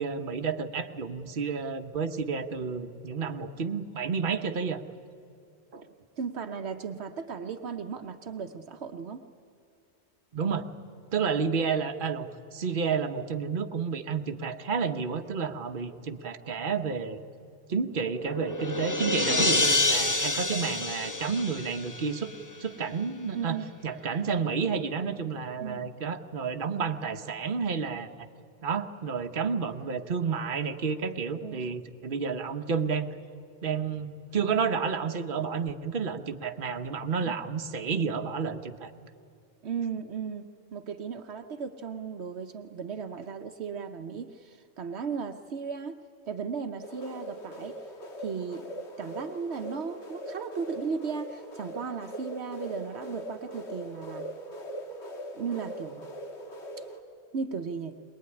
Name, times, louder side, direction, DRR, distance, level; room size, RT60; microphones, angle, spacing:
voice 1, 0.0-4.8 5.7-5.9 10.3-10.7 11.1-17.2 17.7-22.3 22.6-23.6 23.8-28.3 28.6-33.1 33.6-38.9, right 5 dB, 50° right, 6 dB, 1.2 m, -30 dB
voice 2, 6.2-9.2 23.3-23.7 25.6-25.8 31.4-31.6 37.2-37.3 39.6-46.0 46.3-47.8 48.2-48.7 49.0-54.3 55.3-56.1 57.3-58.0, right 6 dB, 70° right, 7 dB, 1.1 m, -36 dB
sound 1, 17.9-22.5, left 2 dB, 15° left, 1.0 m, -28 dB
sound 2, 46.8-57.0, right 1 dB, 75° left, 2.0 m, -41 dB
22.5 x 20.5 x 9.8 m, 2.4 s
omnidirectional pair, 1.1 m